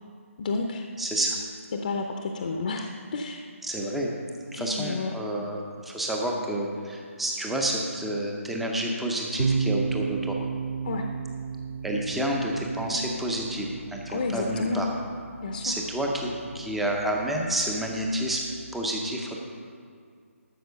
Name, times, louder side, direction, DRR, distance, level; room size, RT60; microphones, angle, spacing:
voice 1, 0.4-0.8 1.8-2.9 3.1-3.4 4.5-5.1 10.8-11.0 14.1-14.8 15.4-15.7, left 3 dB, 40° left, 4 dB, 0.7 m, -30 dB
voice 2, 1.0-1.4 3.6-4.1 4.5-10.4 11.8-14.9 15.6-18.4 18.7-19.4, right 1 dB, ahead, -1 dB, 0.6 m, -29 dB
sound 1, 9.4-18.8, right 5 dB, 65° right, 0.7 m, -34 dB
12.5 x 6.0 x 6.7 m, 2.2 s
hypercardioid pair, 170°, 8 cm